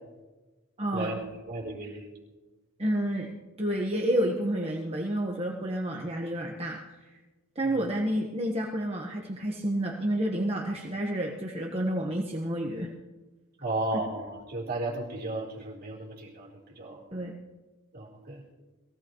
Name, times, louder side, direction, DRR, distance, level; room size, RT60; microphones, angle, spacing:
voice 1, 0.8-1.1 2.8-3.3 3.6-6.8 7.5-12.9 13.9-14.0 17.1-17.3, right 1 dB, 30° right, 0 dB, 1.3 m, -29 dB
voice 2, 1.5-2.1 13.6-17.0 17.9-18.4, right 2 dB, 50° right, -3 dB, 4.0 m, -34 dB
22.0 x 16.5 x 3.1 m, 1.2 s
head